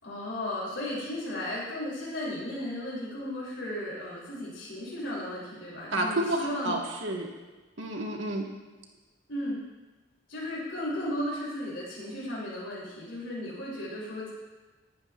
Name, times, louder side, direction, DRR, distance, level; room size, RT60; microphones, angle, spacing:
voice 1, 0.0-6.8 9.3-9.6 10.3-14.3, left 1 dB, 75° left, -6 dB, 3.1 m, -35 dB
voice 2, 5.9-7.3 7.8-8.4, right 1 dB, 75° right, 1 dB, 1.5 m, -30 dB
19.5 x 9.5 x 2.4 m, 1.3 s
head